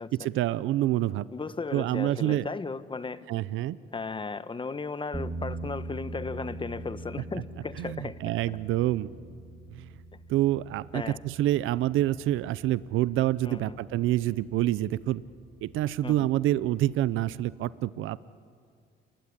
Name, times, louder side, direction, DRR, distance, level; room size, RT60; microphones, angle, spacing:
voice 1, 0.2-1.3 1.7-2.5 3.3-3.8 7.8-9.1 9.7-9.9 10.3-15.2 15.6-18.2, right 14 dB, 85° right, 18 dB, 0.6 m, -27 dB
voice 2, 1.3-3.3 3.9-8.2 8.5-8.6 10.9-11.2 13.4-13.8 16.0-16.3, left 4 dB, 25° left, 14 dB, 1.2 m, -36 dB
sound 1, 5.1-17.5, right 2 dB, 15° right, 2.5 m, -43 dB
29.0 x 20.5 x 9.9 m, 2.3 s
cardioid pair, 90°, 20 cm